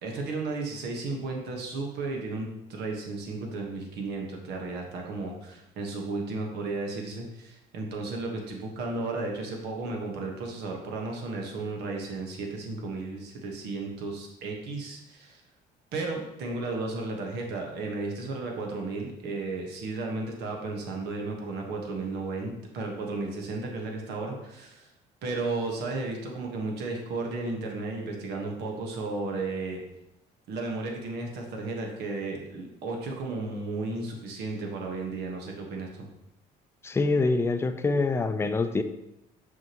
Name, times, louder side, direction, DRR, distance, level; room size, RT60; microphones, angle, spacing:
voice 1, 0.0-15.4 15.9-24.9 25.2-29.8 30.5-36.1, right 3 dB, 80° right, 1 dB, 1.3 m, -34 dB
voice 2, 36.8-38.8, left 3 dB, 15° left, 9 dB, 0.4 m, -25 dB
6.2 x 5.8 x 2.9 m, 0.86 s
cardioid pair, 110°, 17 cm